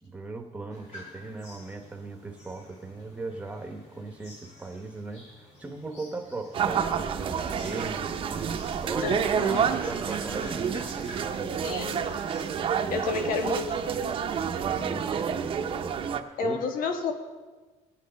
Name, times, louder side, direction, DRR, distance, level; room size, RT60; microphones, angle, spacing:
voice 1, 0.0-11.8 12.8-13.3 14.3-16.6, right 3 dB, 10° right, 4 dB, 1.1 m, -39 dB
sound 1, 0.7-14.1, left 1 dB, 55° left, 4.6 m, -50 dB
sound 2, 6.5-16.2, right 7 dB, 40° right, 0.7 m, -29 dB
voice 2, 9.0-9.6 11.6-12.1 12.9-13.7 16.4-17.1, left 4 dB, 85° left, 6 dB, 1.4 m, -30 dB
21.0 x 8.5 x 5.2 m, 1.3 s
cardioid pair, 175°, 14 cm